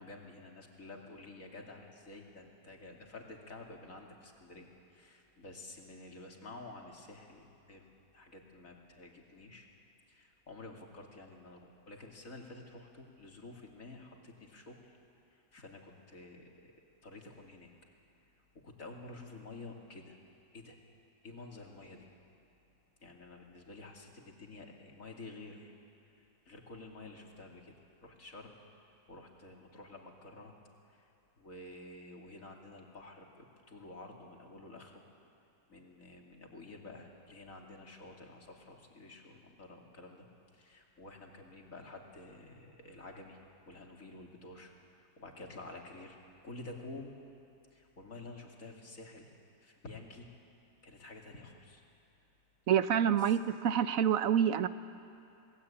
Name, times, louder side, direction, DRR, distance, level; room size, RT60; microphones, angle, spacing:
voice 1, 0.0-9.7 10.1-15.0 15.3-16.7 17.0-17.7 18.5-20.2 20.5-20.8 21.2-22.1 23.0-25.7 26.4-27.7 28.0-28.5 29.1-30.5 30.9-31.1 31.4-35.0 35.7-40.3 40.5-43.4 43.7-46.2 46.4-47.2 47.7-49.3 49.6-50.3 50.8-51.8 53.3-53.4, left 2 dB, 50° left, 0 dB, 3.1 m, -50 dB
voice 2, 52.7-54.7, right 9 dB, 60° right, 12 dB, 1.1 m, -27 dB
27.5 x 20.0 x 8.7 m, 2.7 s
omnidirectional pair, 1.8 m